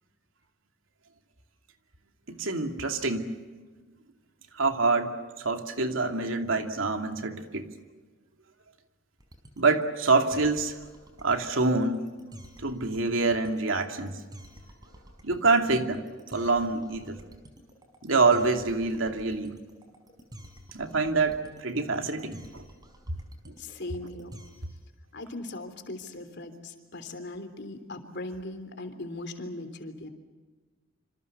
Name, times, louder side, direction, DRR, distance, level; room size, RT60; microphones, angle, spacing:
voice 1, 2.4-3.3 4.6-7.7 9.6-10.7 11.2-12.1 12.6-14.2 15.2-17.2 18.0-19.6 20.7-22.6 23.5-23.6, right 3 dB, 75° right, 5 dB, 2.6 m, -26 dB
sound 1, 9.2-24.8, equal, 20° right, 5.1 m, -49 dB
voice 2, 23.6-24.3 25.1-30.1, left 2 dB, 55° left, 8 dB, 3.4 m, -39 dB
27.0 x 27.0 x 6.8 m, 1.4 s
head